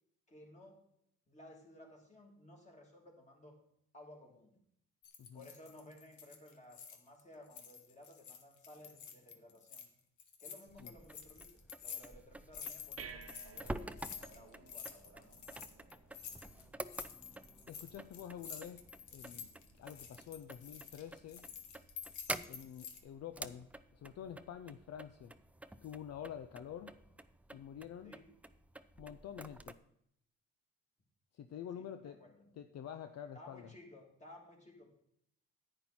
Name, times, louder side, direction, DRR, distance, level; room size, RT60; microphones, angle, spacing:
voice 1, 0.3-0.8 1.3-3.6 3.9-4.6 5.3-9.8 10.4-15.6 28.0-28.3 31.7-32.5 33.3-34.9, left 1 dB, 25° left, 0 dB, 2.9 m, -57 dB
sound 1, 5.0-7.2 7.5-9.9 10.2-23.0, left 7 dB, 75° left, 1.4 m, -50 dB
sound 2, 10.7-29.7, right 1 dB, 5° right, 0.4 m, -49 dB
sound 3, 12.1-23.1, right 6 dB, 50° right, 1.1 m, -59 dB
voice 2, 17.7-18.9 19.1-19.5 19.8-21.5 22.5-25.3 25.8-26.9 27.5-28.1 29.0-29.8 31.3-32.2 32.6-33.7, left 9 dB, 60° left, 9 dB, 0.6 m, -48 dB
10.0 x 8.8 x 4.3 m, 0.71 s
cardioid pair, 90°, 30 cm